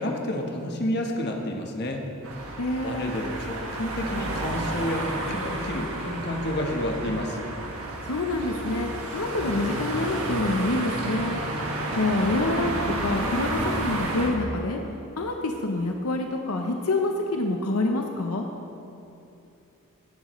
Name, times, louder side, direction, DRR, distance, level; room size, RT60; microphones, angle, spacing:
voice 1, 0.0-2.1 2.8-7.4, left 1 dB, 50° left, 1 dB, 1.2 m, -30 dB
sound 1, 2.2-14.3, right 2 dB, 75° right, 1.7 m, -31 dB
voice 2, 2.6-3.1 8.0-11.4 12.0-14.8 15.2-18.4, left 2 dB, 80° left, 3 dB, 0.8 m, -27 dB
17.0 x 10.5 x 3.1 m, 2.8 s
head